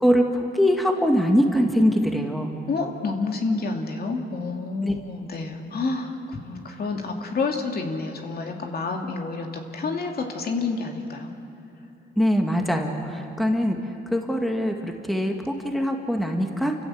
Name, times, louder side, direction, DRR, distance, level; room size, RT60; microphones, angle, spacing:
voice 1, 0.0-2.5 4.8-4.9 12.2-13.8 14.1-16.8, equal, ahead, 3 dB, 2.1 m, -22 dB
voice 2, 2.7-11.3, left 3 dB, 50° left, 2 dB, 2.6 m, -29 dB
29.0 x 15.5 x 8.0 m, 2.9 s
cardioid pair, 90°, 20 cm